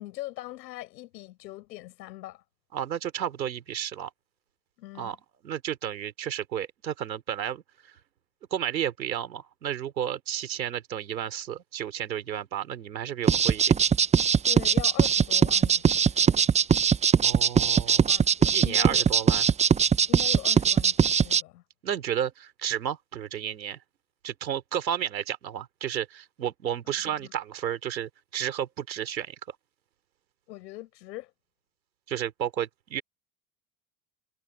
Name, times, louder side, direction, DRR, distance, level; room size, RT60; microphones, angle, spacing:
voice 1, 0.0-2.4 4.8-5.2 14.5-16.4 17.9-19.3 20.1-21.6 27.2-27.3 30.5-31.3, left 17 dB, 75° left, 5.9 m, -41 dB
voice 2, 2.7-4.1 4.9-5.2 5.4-7.6 8.5-13.7 17.2-18.1 18.5-19.5 21.8-23.8 24.2-29.3 32.1-33.0, right 10 dB, 90° right, 3.4 m, -32 dB
sound 1, 13.3-21.4, right 7 dB, 15° right, 0.5 m, -21 dB
hypercardioid pair, 80°, 50 cm